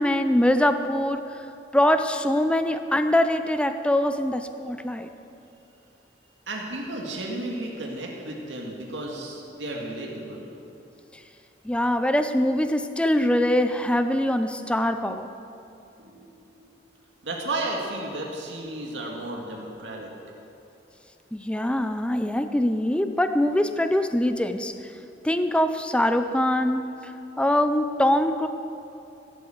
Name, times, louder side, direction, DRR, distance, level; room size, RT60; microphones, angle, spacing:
voice 1, 0.0-1.4 1.7-5.1 11.6-15.3 21.3-24.7 25.2-27.1 27.4-28.5, left 1 dB, 5° left, 8 dB, 0.5 m, -23 dB
voice 2, 6.5-10.5 13.4-13.6 16.0-16.8 17.2-20.1, right 2 dB, 85° right, -1 dB, 2.0 m, -33 dB
16.5 x 8.5 x 7.9 m, 2.8 s
head